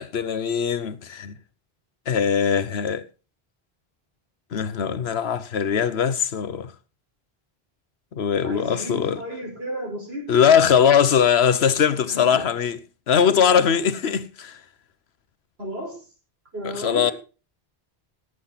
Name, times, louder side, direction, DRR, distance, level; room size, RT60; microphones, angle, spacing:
voice 1, 0.0-1.3 2.1-3.1 4.5-6.7 8.1-9.2 10.3-12.8 13.1-14.6 16.6-17.1, left 7 dB, 90° left, 1.1 m, -21 dB
voice 2, 8.4-10.3 12.1-12.4 15.6-16.0 16.5-17.1, equal, 75° right, 5.0 m, -33 dB
17.5 x 8.1 x 4.1 m
omnidirectional pair, 1.0 m